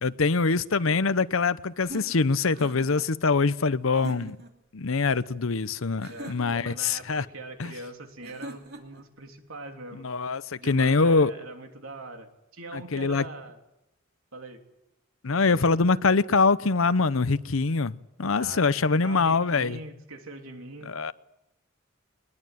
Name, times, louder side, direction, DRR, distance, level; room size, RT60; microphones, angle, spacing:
voice 1, 0.0-4.4 4.7-7.3 7.6-7.7 9.9-11.3 12.7-13.3 15.2-19.8 20.8-21.1, left 4 dB, 75° left, 0.8 m, -24 dB
sound 1, 1.8-3.1 3.9-4.5 6.0-6.8 8.2-9.0, right 2 dB, 50° right, 3.1 m, -42 dB
voice 2, 6.1-10.1 10.6-13.6 14.3-14.6 15.3-15.7 18.3-18.7 19.0-20.9, right 2 dB, 85° right, 3.3 m, -42 dB
22.0 x 21.0 x 9.2 m
head